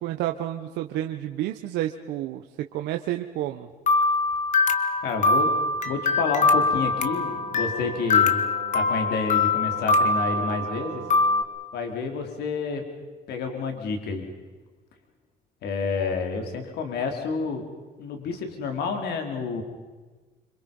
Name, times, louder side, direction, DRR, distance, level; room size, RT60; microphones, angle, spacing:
voice 1, 0.0-2.4 2.7-3.7, right 13 dB, 85° right, 5 dB, 1.2 m, -30 dB
sound 1, 3.9-11.4, left 3 dB, 45° left, 2.0 m, -23 dB
voice 2, 5.0-5.5 5.9-8.4 8.7-11.0 11.7-12.8 13.3-14.3 15.6-17.6 18.0-19.6, left 4 dB, 75° left, 5 dB, 4.1 m, -29 dB
sound 2, 6.4-11.4, right 11 dB, 70° right, 3.8 m, -41 dB
27.5 x 26.0 x 5.5 m, 1.3 s
cardioid pair, 110°, 17 cm